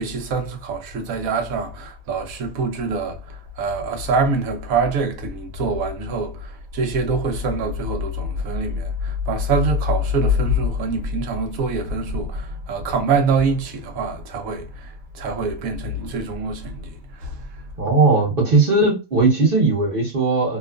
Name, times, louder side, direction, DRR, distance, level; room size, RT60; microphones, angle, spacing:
voice 1, 0.0-17.7, right 2 dB, 85° right, 1.2 m, -24 dB
voice 2, 17.8-20.6, right 3 dB, 45° right, 1.2 m, -18 dB
2.9 x 2.3 x 2.3 m
omnidirectional pair, 1.4 m